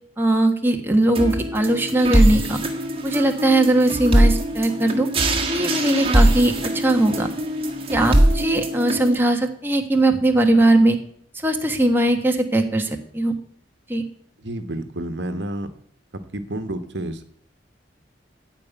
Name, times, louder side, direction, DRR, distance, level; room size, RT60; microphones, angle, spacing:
voice 1, 0.2-2.6 3.0-5.1 5.5-7.3 7.9-11.0 11.4-13.3 13.9-14.0, right 1 dB, 10° right, 3 dB, 1.4 m, -19 dB
sound 1, 1.1-9.1, right 1 dB, 35° right, 1.7 m, -21 dB
voice 2, 14.4-15.7 16.3-17.2, right 1 dB, 80° right, 9 dB, 1.3 m, -29 dB
15.0 x 5.2 x 9.2 m, 0.64 s
head